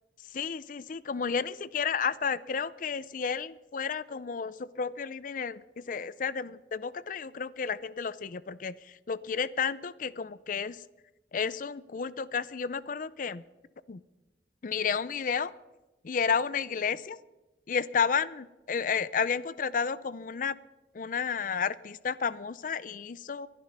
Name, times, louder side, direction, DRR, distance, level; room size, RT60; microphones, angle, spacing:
voice 1, 0.3-5.6 5.9-8.7 9.1-10.8 11.3-13.4 13.9-14.0 14.6-15.5 16.0-17.2 17.7-20.6 20.9-23.5, left 6 dB, 50° left, 18 dB, 0.5 m, -31 dB
22.0 x 11.5 x 5.3 m, 1.1 s
head